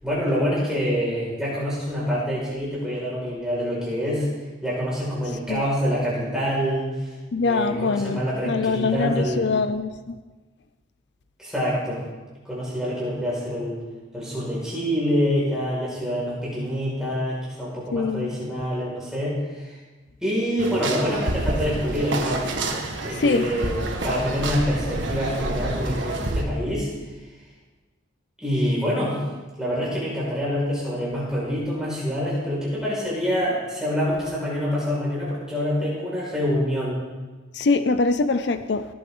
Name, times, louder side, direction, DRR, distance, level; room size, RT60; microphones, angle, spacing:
voice 1, 0.0-4.3 4.6-7.1 7.5-9.5 11.4-12.0 12.4-13.8 14.1-19.8 20.2-22.5 23.0-23.8 24.0-26.9 28.4-29.2 29.6-37.0, equal, 5° right, -7 dB, 5.4 m, -26 dB
voice 2, 7.3-10.2 17.9-18.3 23.2-23.5 37.5-38.9, left 3 dB, 60° left, 11 dB, 0.5 m, -23 dB
sound 1, 20.6-26.4, right 2 dB, 70° right, 1.6 m, -28 dB
18.5 x 11.0 x 3.9 m, 1.2 s
head